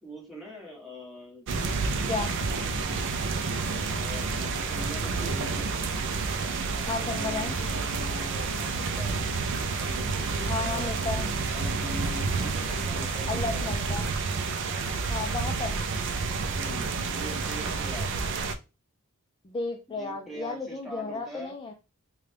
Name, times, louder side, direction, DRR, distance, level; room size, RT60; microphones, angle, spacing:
voice 1, 0.0-1.5 3.6-5.7 6.7-9.2 9.8-14.1 16.4-18.2 19.9-21.6, left 1 dB, ahead, -3 dB, 1.3 m, -43 dB
sound 1, 1.5-18.6, right 4 dB, 60° right, 0.4 m, -29 dB
voice 2, 6.9-7.5 10.5-11.2 13.3-14.1 15.1-15.8 19.4-21.7, left 3 dB, 25° left, 2 dB, 0.4 m, -33 dB
3.7 x 2.2 x 3.3 m, 0.29 s
head